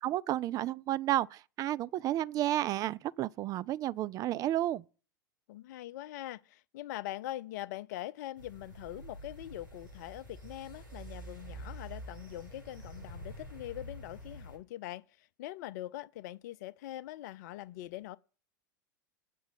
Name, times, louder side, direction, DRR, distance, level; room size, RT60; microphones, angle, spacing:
voice 1, 0.0-4.8, right 13 dB, 35° right, 0.4 m, -32 dB
voice 2, 5.5-18.2, left 14 dB, 55° left, 0.5 m, -43 dB
sound 1, 8.4-14.6, right 1 dB, 75° right, 7.0 m, -47 dB
8.4 x 6.0 x 7.4 m
figure-of-eight pair, 90°, 11 cm